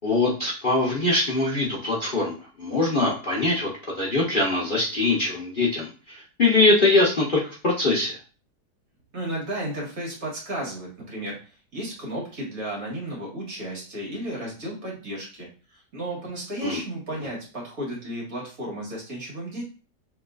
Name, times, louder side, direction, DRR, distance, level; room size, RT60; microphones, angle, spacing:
voice 1, 0.0-3.7 4.0-8.2 16.6-16.8, left 2 dB, 40° left, -5 dB, 0.8 m, -22 dB
voice 2, 9.1-19.6, right 1 dB, 55° right, -3 dB, 2.1 m, -33 dB
6.4 x 3.1 x 2.4 m, 0.37 s
omnidirectional pair, 1.8 m